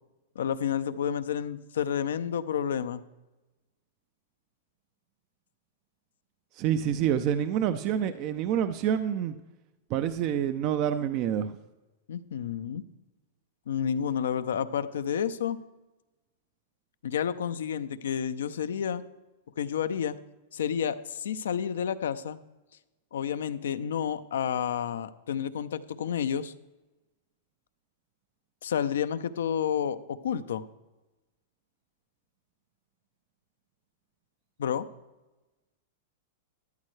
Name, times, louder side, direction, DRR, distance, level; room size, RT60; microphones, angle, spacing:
voice 1, 0.4-3.0 12.1-12.8 13.7-15.6 17.0-19.0 19.6-20.2 20.5-22.4 23.1-26.5 28.6-30.6 34.6-34.9, left 8 dB, 85° left, 12 dB, 0.6 m, -30 dB
voice 2, 6.5-9.3 9.9-11.6, right 9 dB, 45° right, 11 dB, 0.5 m, -27 dB
13.0 x 11.0 x 3.2 m, 1.1 s
hypercardioid pair, 125°, 0 cm